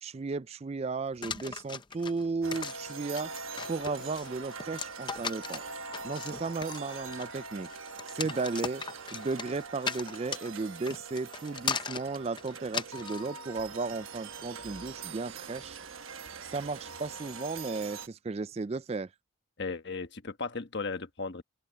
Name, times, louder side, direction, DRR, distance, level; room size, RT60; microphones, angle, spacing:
voice 1, 0.0-3.3 3.7-5.6 6.0-7.7 8.1-8.8 9.1-15.8 16.5-19.1, right 3 dB, 30° right, 0.3 m, -35 dB
sound 1, 1.2-13.3, left 6 dB, 20° left, 0.6 m, -38 dB
sound 2, 2.4-18.1, right 4 dB, 70° right, 1.2 m, -43 dB
voice 2, 19.6-21.4, left 4 dB, 50° left, 1.3 m, -36 dB
open air
head